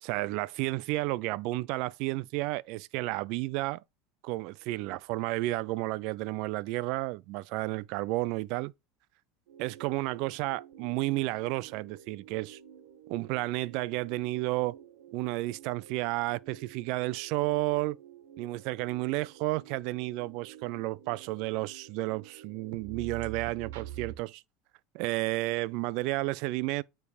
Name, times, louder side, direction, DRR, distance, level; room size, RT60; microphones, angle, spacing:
voice 1, 0.0-3.8 4.2-8.7 9.6-12.6 13.1-14.8 15.1-18.0 18.4-24.4 24.9-26.8, right 19 dB, 65° right, 0.4 m, -32 dB
sound 1, 9.5-24.2, right 10 dB, 85° right, 1.1 m, -49 dB
9.3 x 3.4 x 4.9 m
supercardioid pair, 125°, 0 cm